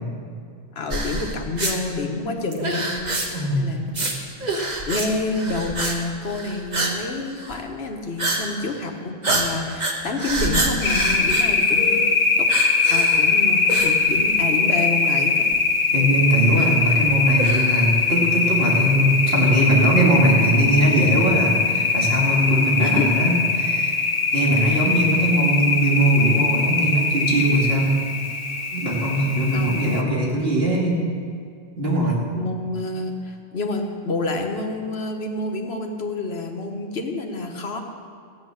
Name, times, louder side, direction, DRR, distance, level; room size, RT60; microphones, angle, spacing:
voice 1, 0.7-3.0 3.5-3.9 4.9-12.0 12.4-12.5 12.9-15.4 22.8-23.1 24.7-24.8 29.5-30.0 32.3-37.8, left 3 dB, 80° left, 3 dB, 1.5 m, -28 dB
sound 1, 0.9-1.8 2.5-3.5 3.9-4.1 4.4-5.1 5.3-6.0 6.2-7.0 7.3-7.6 8.2-8.4 8.7-8.8 9.2-12.1 12.5-13.3 13.7-14.5 14.8-14.9 15.5-15.6 16.6-17.9, right 2 dB, 45° right, 1.5 m, -26 dB
voice 2, 3.3-3.8 15.9-24.0 24.3-27.9 28.7-31.0 31.8-32.2, right 1 dB, 70° right, -3 dB, 2.8 m, -20 dB
sound 2, 10.8-30.0, left 4 dB, 60° left, 1.2 m, -21 dB
14.5 x 9.4 x 6.5 m, 2.2 s
omnidirectional pair, 1.0 m